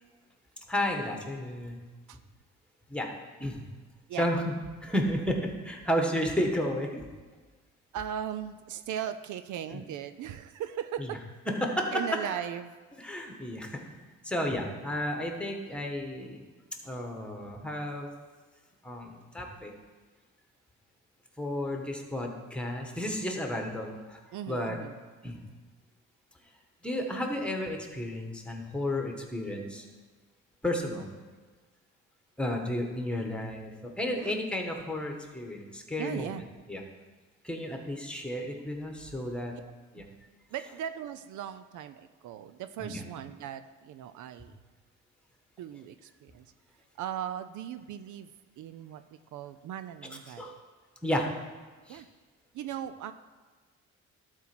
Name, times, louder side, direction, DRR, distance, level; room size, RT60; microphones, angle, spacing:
voice 1, 0.7-1.8 2.9-3.1 3.4-3.7 4.2-4.4 4.8-7.1 9.7-9.8 11.6-11.9 13.0-13.8 14.2-16.4 16.8-18.1 18.8-19.7 21.4-24.2 24.5-24.8 25.2-25.4 26.8-29.8 30.6-31.1 32.4-36.3 36.7-36.8 37.4-39.5 39.9-40.0 42.8-43.0 50.4-50.5 51.0-51.3 51.9-52.0, left 1 dB, 5° left, 2 dB, 1.5 m, -32 dB
voice 2, 7.9-11.2 11.9-12.7 24.3-25.0 34.2-34.4 36.0-36.5 40.0-40.1 40.5-44.5 45.6-46.5 47.0-48.3 48.6-50.6 51.9-52.1 52.5-53.1, right 10 dB, 75° right, 11 dB, 0.5 m, -38 dB
12.0 x 4.5 x 6.1 m, 1.4 s
cardioid pair, 90°, 30 cm